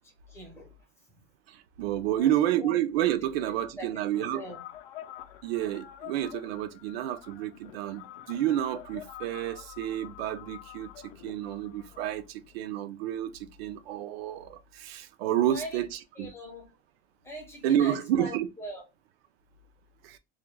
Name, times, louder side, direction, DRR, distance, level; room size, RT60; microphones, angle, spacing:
voice 1, 0.3-0.8 2.1-2.3 2.5-2.7 3.8-4.0 4.3-4.6 15.4-15.8 16.2-16.7 17.2-18.9, equal, 10° left, 0.5 m, -41 dB
voice 2, 1.5-4.4 5.4-10.9 11.2-16.3 17.6-18.5 20.0-20.2, right 11 dB, 75° right, 0.5 m, -30 dB
sound 1, 4.1-12.6, left 11 dB, 65° left, 0.5 m, -47 dB
2.3 x 2.2 x 3.1 m
supercardioid pair, 170°, 31 cm